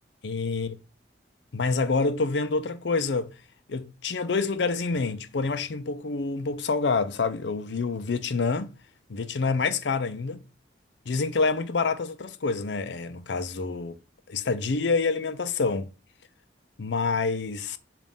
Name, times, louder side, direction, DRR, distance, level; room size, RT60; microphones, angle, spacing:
voice 1, 0.2-0.7 1.5-3.3 3.7-8.7 9.1-10.4 11.1-14.0 14.3-15.9 16.8-17.8, left 4 dB, 80° left, 0.6 m, -27 dB
7.1 x 2.6 x 5.4 m
head